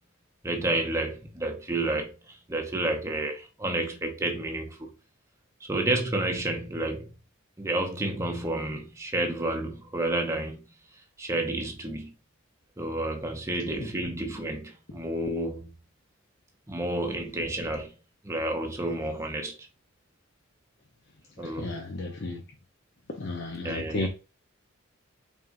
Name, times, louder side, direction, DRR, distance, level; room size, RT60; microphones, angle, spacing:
voice 1, 0.4-4.9 5.6-7.1 7.6-10.7 11.2-12.1 12.8-15.7 16.7-18.0 18.2-19.7 21.4-21.8 23.6-24.1, right 2 dB, 15° right, 0.7 m, -30 dB
voice 2, 21.4-22.4 23.1-24.1, left 2 dB, 55° left, 0.7 m, -33 dB
4.4 x 3.5 x 2.5 m
head